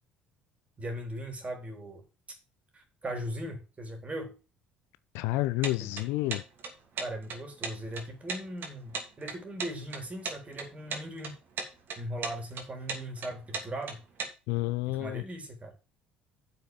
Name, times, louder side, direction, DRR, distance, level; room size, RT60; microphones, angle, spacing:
voice 1, 0.8-2.0 2.7-4.4 5.8-5.9 7.0-11.4 12.0-14.0 14.9-15.7, right 1 dB, 25° right, 3.9 m, -39 dB
voice 2, 5.1-6.4 14.5-15.2, left 17 dB, 65° left, 0.5 m, -29 dB
sound 1, 5.6-14.3, right 4 dB, 45° right, 2.9 m, -37 dB
7.4 x 6.0 x 7.4 m
figure-of-eight pair, 55°, 5 cm